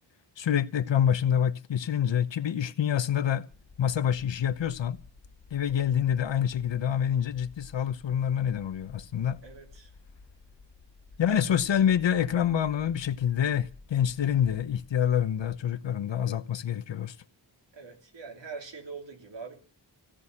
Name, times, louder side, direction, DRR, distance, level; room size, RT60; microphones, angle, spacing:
voice 1, 0.4-3.5 3.8-5.0 5.5-9.4 11.2-17.1, left 9 dB, 80° left, 1.0 m, -26 dB
sound 1, 3.5-15.6, left 4 dB, 55° left, 1.2 m, -53 dB
voice 2, 9.4-9.9 11.7-11.8 17.7-19.6, right 5 dB, 80° right, 3.3 m, -43 dB
16.5 x 6.3 x 9.9 m
wide cardioid pair, 105°, 43 cm